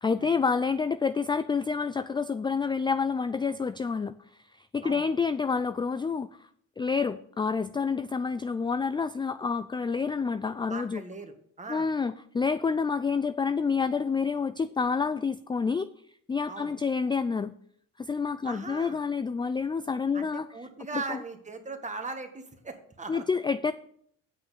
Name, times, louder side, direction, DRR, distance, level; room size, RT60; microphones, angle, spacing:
voice 1, 0.0-6.5 6.8-11.0 11.7-15.9 16.3-17.6 18.0-20.5 20.9-21.2 23.1-23.7, left 5 dB, 15° left, 12 dB, 0.3 m, -28 dB
voice 2, 10.7-11.9 16.5-16.7 18.4-19.0 20.1-23.2, right 3 dB, 25° right, 6 dB, 1.6 m, -39 dB
8.3 x 6.1 x 6.6 m, 0.65 s
cardioid pair, 90°, 30 cm